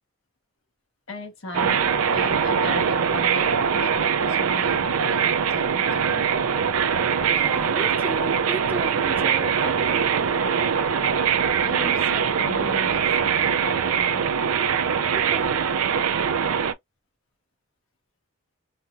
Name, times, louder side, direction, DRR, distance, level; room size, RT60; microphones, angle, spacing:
voice 1, 1.1-6.3 11.6-14.2, left 2 dB, 75° left, 1.4 m, -37 dB
sound 1, 1.5-16.7, right 7 dB, 80° right, 0.4 m, -22 dB
voice 2, 7.3-10.1 15.1-15.6, right 2 dB, 10° right, 1.0 m, -34 dB
4.2 x 2.3 x 2.4 m
head